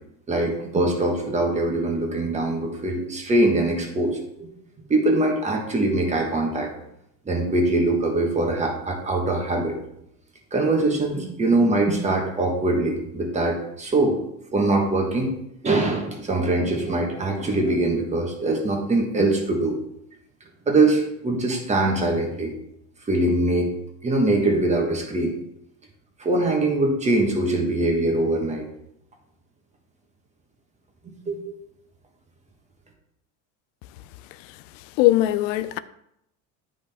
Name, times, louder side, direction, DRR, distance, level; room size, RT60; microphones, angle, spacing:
voice 1, 0.3-4.5 4.9-6.7 7.2-9.8 10.5-14.2 14.5-15.3 15.6-19.8 20.7-22.5 23.1-23.7 24.0-25.3 26.2-28.7 31.0-31.5, right 2 dB, 20° right, 1.4 m, -22 dB
voice 2, 35.0-35.8, left 16 dB, 75° left, 0.5 m, -19 dB
9.9 x 5.1 x 3.6 m
supercardioid pair, 135°, 38 cm